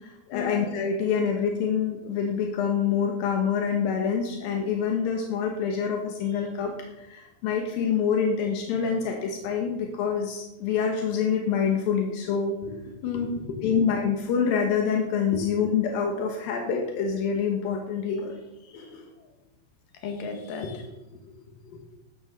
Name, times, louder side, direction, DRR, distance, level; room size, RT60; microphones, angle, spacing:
voice 1, 0.0-12.6 13.6-18.4 18.6-19.1, left 6 dB, 75° left, 1 dB, 2.2 m, -26 dB
voice 2, 12.6-13.8 15.3-15.4 19.2-19.3 20.0-22.0, left 5 dB, 55° left, 3 dB, 2.6 m, -35 dB
15.0 x 12.5 x 4.1 m, 0.99 s
omnidirectional pair, 5.9 m